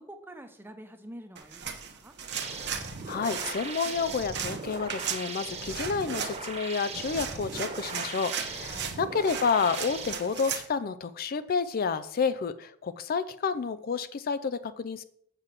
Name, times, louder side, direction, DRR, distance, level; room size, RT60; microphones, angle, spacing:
voice 1, 0.0-2.1 8.7-8.9, right 1 dB, 10° right, 7 dB, 0.9 m, -47 dB
sound 1, 1.4-10.7, right 7 dB, 55° right, 1.1 m, -37 dB
sound 2, 2.3-10.1, right 3 dB, 30° right, 1.3 m, -39 dB
voice 2, 3.1-15.0, left 5 dB, 45° left, 13 dB, 0.4 m, -30 dB
7.4 x 6.8 x 5.9 m, 0.68 s
head